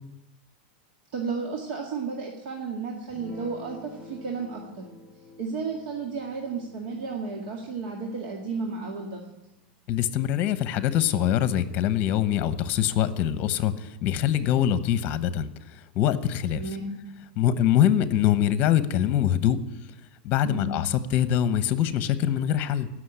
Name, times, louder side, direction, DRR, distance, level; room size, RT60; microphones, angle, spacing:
voice 1, 1.1-4.9 5.4-9.2 16.5-17.0 20.4-20.7, right 4 dB, 60° right, 0 dB, 2.1 m, -33 dB
Guitar, 3.1-9.7, left 2 dB, 15° left, 4.5 m, -49 dB
voice 2, 9.9-16.6 17.4-19.6 20.2-22.9, left 10 dB, 40° left, 13 dB, 1.0 m, -24 dB
16.0 x 6.3 x 10.0 m, 0.95 s
supercardioid pair, 145°, 5 cm